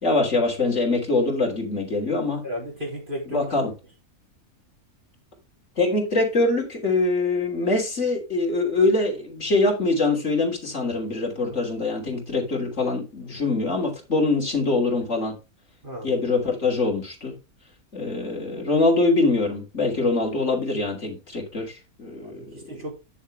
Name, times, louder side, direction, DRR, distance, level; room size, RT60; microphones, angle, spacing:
voice 1, 0.0-2.4 3.3-3.7 5.8-15.4 16.0-17.4 17.9-22.4, left 3 dB, 50° left, 3.6 m, -23 dB
voice 2, 2.4-3.5 11.5-11.6 15.8-16.1 22.2-22.9, equal, 35° right, 3.6 m, -34 dB
10.5 x 7.1 x 3.6 m
omnidirectional pair, 1.6 m